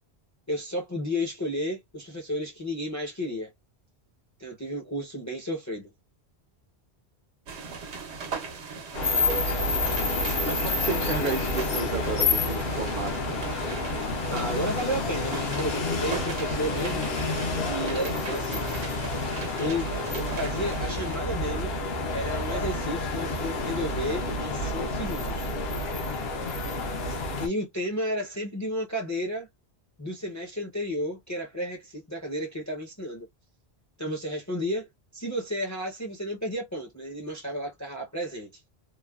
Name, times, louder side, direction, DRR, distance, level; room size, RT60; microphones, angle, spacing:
voice 1, 0.5-3.5 4.4-5.9 14.3-17.1 17.6-18.6 19.6-19.9 20.4-21.7 22.1-25.5 27.4-29.5 30.0-33.3 34.0-38.5, equal, 20° left, 0.5 m, -32 dB
sound 1, 7.5-21.2, right 5 dB, 90° right, 1.0 m, -39 dB
sound 2, 8.9-27.5, left 2 dB, 70° left, 0.9 m, -29 dB
voice 2, 10.4-13.3, right 4 dB, 60° right, 0.7 m, -32 dB
3.1 x 2.1 x 2.3 m
omnidirectional pair, 1.1 m